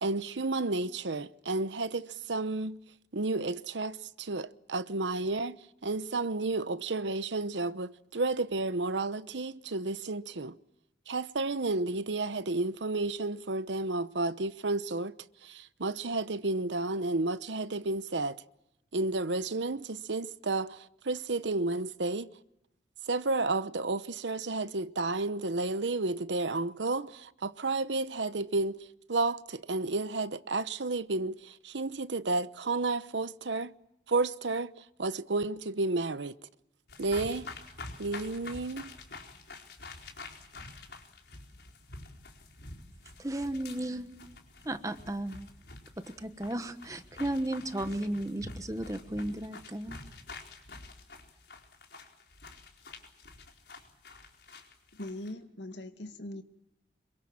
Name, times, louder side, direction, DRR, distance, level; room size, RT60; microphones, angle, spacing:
voice 1, 0.0-2.8 3.1-10.6 11.1-15.1 15.4-18.3 18.9-22.3 23.1-33.7 34.1-34.7 35.0-36.3 37.0-37.5 38.0-38.9, right 3 dB, 85° right, 1.0 m, -31 dB
sound 1, 36.9-55.3, left 3 dB, 65° left, 4.5 m, -48 dB
voice 2, 43.2-44.2 44.6-45.5 46.2-50.0, right 1 dB, 20° right, 1.2 m, -34 dB
voice 3, 54.9-56.4, left 1 dB, 85° left, 2.2 m, -41 dB
27.0 x 23.5 x 7.4 m
head